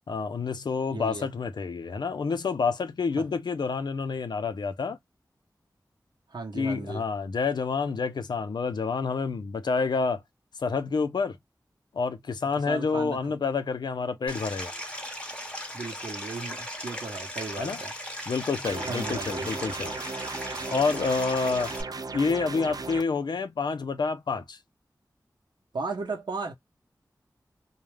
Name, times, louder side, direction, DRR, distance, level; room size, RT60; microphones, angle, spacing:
voice 1, 0.1-5.0 6.5-10.2 10.6-11.4 11.9-14.7 17.6-17.8 18.3-20.0 20.7-21.7 22.1-24.6, left 4 dB, 80° left, 0.4 m, -28 dB
voice 2, 0.9-1.3 3.1-3.2 6.3-7.1 12.6-13.2 15.7-17.9 18.9-19.5 25.7-26.5, right 3 dB, 85° right, 0.8 m, -35 dB
Stream, 14.3-21.8, equal, 15° left, 0.8 m, -37 dB
sound 1, 18.6-23.0, right 4 dB, 60° right, 0.4 m, -36 dB
2.3 x 2.1 x 3.2 m
wide cardioid pair, 55°, 7 cm